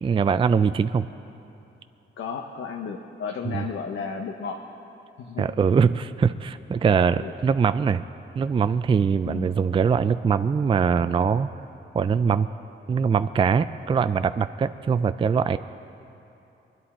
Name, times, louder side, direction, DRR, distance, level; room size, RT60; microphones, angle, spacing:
voice 1, 0.0-1.1 3.5-3.6 5.4-8.0 8.4-11.5 11.9-12.5 12.9-15.6, right 6 dB, 25° right, 12 dB, 0.3 m, -22 dB
voice 2, 2.2-4.6 5.2-5.6 7.2-7.3 9.2-9.5, left 5 dB, 75° left, 3 dB, 0.9 m, -33 dB
23.0 x 10.5 x 4.3 m, 2.9 s
cardioid pair, 75°, 21 cm